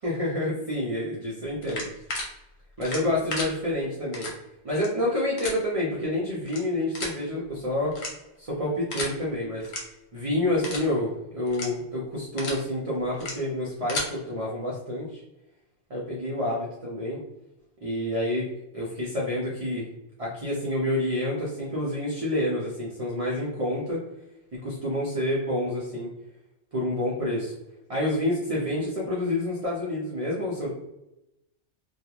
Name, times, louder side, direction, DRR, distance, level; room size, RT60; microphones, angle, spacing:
voice 1, 0.0-1.8 2.8-4.3 4.6-8.0 8.4-9.7 10.1-15.2 15.9-17.2 17.8-18.5 18.7-19.9 20.2-24.0 24.6-26.1 26.7-27.5 27.9-30.7, left 1 dB, 40° right, -6 dB, 0.6 m, -28 dB
sound 1, 1.6-2.2 2.8-3.5 4.1-4.3 4.7-4.9 5.4-5.5 6.4-6.6 6.9-7.2 7.9-8.4 8.9-9.1 9.6-9.8 10.2-10.3 10.6-10.9 11.5-11.7 12.1-12.6 13.1-13.3 13.7-14.1, left 2 dB, 75° left, 1.0 m, -32 dB
3.0 x 2.4 x 2.4 m, 0.90 s
omnidirectional pair, 1.1 m